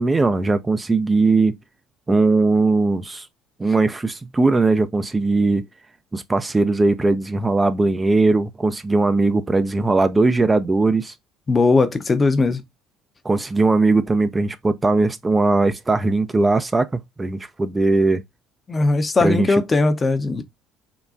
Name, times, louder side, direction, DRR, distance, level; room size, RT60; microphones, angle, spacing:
voice 1, 0.0-1.6 2.1-3.3 3.6-5.7 6.1-11.1 13.2-18.2 19.2-19.6, right 3 dB, 20° right, 0.4 m, -19 dB
voice 2, 11.5-12.6 18.7-20.4, left 3 dB, 30° left, 0.6 m, -18 dB
3.7 x 2.2 x 2.4 m
hypercardioid pair, 65°, 0 cm